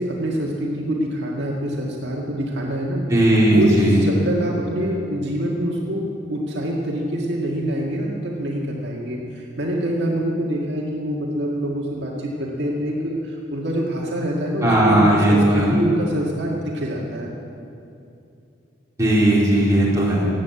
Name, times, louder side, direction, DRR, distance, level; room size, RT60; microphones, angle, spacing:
voice 1, 0.0-3.1 3.5-17.3, equal, 65° right, -2 dB, 1.9 m, -25 dB
voice 2, 3.1-4.0 14.6-15.7 19.0-20.3, right 1 dB, 15° right, -7 dB, 4.1 m, -17 dB
16.0 x 9.7 x 8.4 m, 2.6 s
head